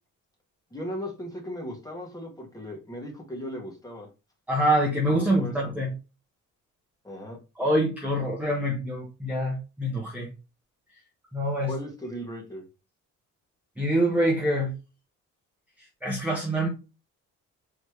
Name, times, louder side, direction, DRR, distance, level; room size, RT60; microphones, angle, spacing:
voice 1, 0.7-4.1 5.1-5.7 7.0-7.4 11.6-12.7, equal, 10° left, 0 dB, 1.8 m, -37 dB
voice 2, 4.5-5.9 7.6-10.3 11.3-11.7 13.8-14.7 16.0-16.7, right 1 dB, 5° right, -3 dB, 1.2 m, -25 dB
4.1 x 3.3 x 3.1 m, 0.30 s
cardioid pair, 130°, 30 cm